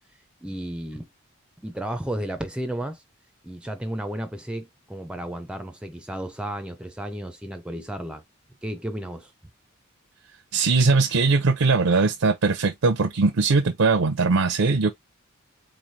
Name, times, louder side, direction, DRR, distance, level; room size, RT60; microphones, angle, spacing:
voice 1, 0.4-1.1 1.6-3.0 3.4-8.2 8.6-9.3, right 1 dB, 5° right, 0.4 m, -33 dB
voice 2, 10.5-14.9, right 4 dB, 90° right, 0.6 m, -20 dB
3.9 x 3.1 x 2.7 m
head